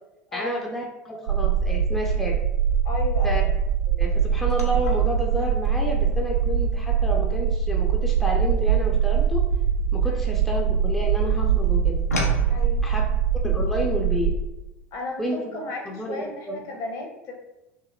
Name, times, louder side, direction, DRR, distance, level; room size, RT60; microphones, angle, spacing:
voice 1, 0.3-2.4 3.2-3.4 3.9-9.5 9.9-12.0 12.8-13.0 13.4-14.3 15.2-16.6, equal, 5° left, -1 dB, 0.4 m, -30 dB
sound 1, 1.3-14.3, right 7 dB, 75° right, 0.3 m, -23 dB
voice 2, 2.8-3.4 10.0-10.2 12.5-12.8 14.9-15.3 15.5-17.3, left 3 dB, 45° left, 1 dB, 0.7 m, -34 dB
sound 2, 4.5-10.9 11.3-12.5, left 2 dB, 85° left, 0.4 m, -36 dB
2.8 x 2.7 x 2.5 m, 0.99 s
figure-of-eight pair, 75°, 8 cm